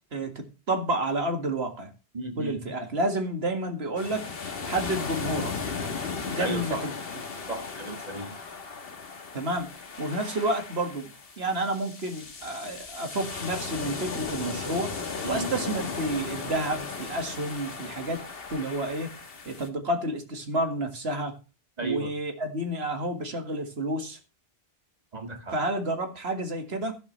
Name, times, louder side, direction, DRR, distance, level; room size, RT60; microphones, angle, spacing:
voice 1, 0.1-1.9 2.4-4.3 4.7-5.5 6.3-6.9 9.3-9.7 10.0-11.1 11.4-14.9 15.2-18.2 18.5-19.1 19.5-21.3 21.8-24.2 25.5-27.0, right 1 dB, 75° right, 5 dB, 2.1 m, -30 dB
voice 2, 2.1-2.6 6.4-6.9 7.5-8.3 15.2-15.5 21.8-22.1 25.1-25.5, right 2 dB, 40° right, 4 dB, 2.1 m, -34 dB
sound 1, 4.0-19.7, left 4 dB, 65° left, 1.5 m, -36 dB
12.5 x 11.0 x 3.2 m, 0.31 s
omnidirectional pair, 1.1 m